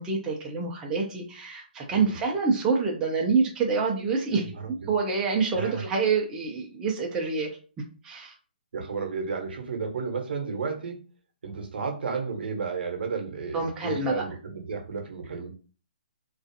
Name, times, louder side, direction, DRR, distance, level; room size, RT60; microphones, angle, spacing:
voice 1, 0.0-7.5 8.0-8.3 13.5-14.2, right 4 dB, 10° right, -1 dB, 0.4 m, -27 dB
voice 2, 4.3-4.9 5.5-5.8 8.7-11.0 11.4-15.5, right 5 dB, 70° right, 3 dB, 0.8 m, -33 dB
2.4 x 2.3 x 2.6 m, 0.37 s
hypercardioid pair, 155°, 6 cm